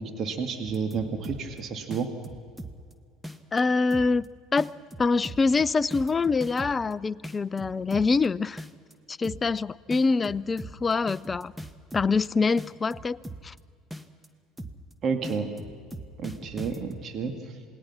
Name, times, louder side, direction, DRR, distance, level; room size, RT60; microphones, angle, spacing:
voice 1, 0.0-2.1 15.0-15.5 16.2-17.6, right 5 dB, 45° right, 5 dB, 2.4 m, -31 dB
sound 1, 0.7-1.6 1.9-2.9 3.2-3.6 3.9-4.3 4.6-6.9 7.2-8.3 8.6-8.9 9.2-9.6 9.9-12.3 12.6-13.6 13.9-14.3 14.6-14.9 15.2-17.0, right 1 dB, 5° right, 1.6 m, -40 dB
voice 2, 3.5-4.3 4.5-4.7 5.0-8.6 9.1-11.5 11.9-13.2 13.4-13.5, left 4 dB, 25° left, 18 dB, 0.5 m, -25 dB
27.5 x 20.0 x 6.0 m, 2.1 s
hypercardioid pair, 70°, 0 cm